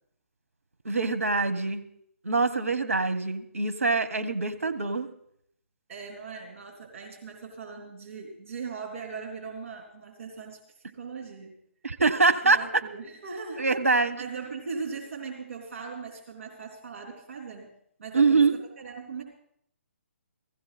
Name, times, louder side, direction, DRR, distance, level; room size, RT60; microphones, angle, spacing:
voice 1, 0.8-1.8 2.2-5.1 11.8-12.8 13.6-14.2 18.1-18.6, right 3 dB, 85° right, 9 dB, 1.2 m, -24 dB
voice 2, 5.9-10.6 10.8-11.5 12.4-13.7 14.2-17.7 18.0-19.2, right 5 dB, 60° right, 0 dB, 3.4 m, -39 dB
16.5 x 15.0 x 4.2 m, 0.69 s
figure-of-eight pair, 140°, 7 cm